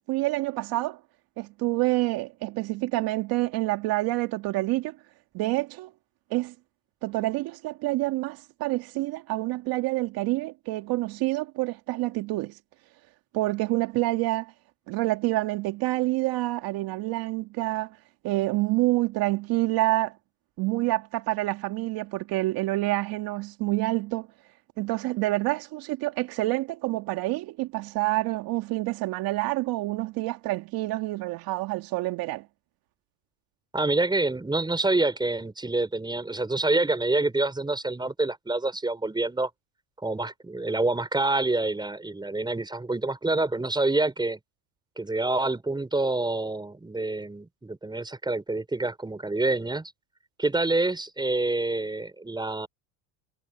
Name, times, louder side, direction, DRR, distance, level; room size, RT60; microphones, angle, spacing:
voice 1, 0.1-1.0 1.4-5.0 5.3-5.9 6.3-6.5 7.0-12.6 13.3-14.5 14.9-18.0 18.2-20.1 20.6-24.3 24.8-32.4, right 19 dB, 60° right, 2.5 m, -27 dB
voice 2, 33.7-39.5 40.0-44.4 45.0-49.9 50.4-52.7, right 2 dB, 10° right, 5.2 m, -27 dB
supercardioid pair, 100°, 41 cm